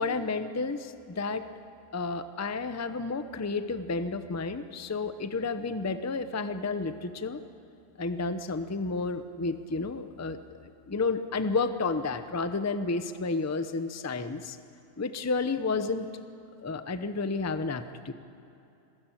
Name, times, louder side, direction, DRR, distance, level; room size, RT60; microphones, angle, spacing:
voice 1, 0.0-1.5 1.9-7.4 8.0-14.6 15.0-16.1 16.6-18.1, left 3 dB, 15° left, 10 dB, 0.6 m, -31 dB
26.5 x 15.5 x 9.1 m, 2.8 s
omnidirectional pair, 1.5 m